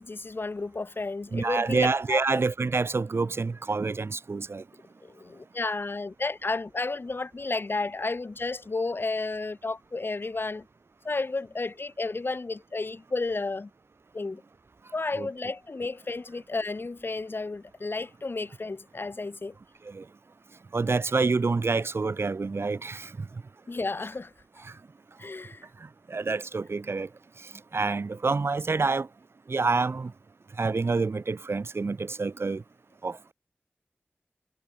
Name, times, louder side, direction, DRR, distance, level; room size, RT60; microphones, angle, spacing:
voice 1, 0.0-2.4 5.0-10.7 11.0-13.7 14.1-14.4 14.9-19.6 23.7-24.3 25.2-25.6, left 3 dB, 55° left, 5.7 m, -32 dB
voice 2, 1.3-4.6 15.2-15.3 19.9-20.0 20.7-23.1 24.6-24.7 26.1-27.1 27.7-29.1 29.5-30.1 30.6-32.6 33.0-33.3, right 4 dB, 70° right, 4.0 m, -27 dB
wide cardioid pair, 60°, 4 cm